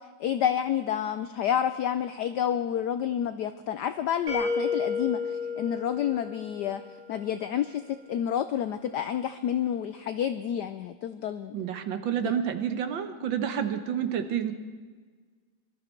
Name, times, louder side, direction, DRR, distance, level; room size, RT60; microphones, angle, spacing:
voice 1, 0.2-5.2 5.6-6.8 7.1-7.8 8.1-11.6 12.2-12.3, left 9 dB, 80° left, 11 dB, 0.9 m, -29 dB
sound 1, 4.3-7.1, left 5 dB, 80° right, 4.9 m, -31 dB
voice 2, 11.5-14.5, right 8 dB, 65° right, 8 dB, 1.6 m, -29 dB
22.5 x 13.0 x 4.5 m, 1.5 s
omnidirectional pair, 2.4 m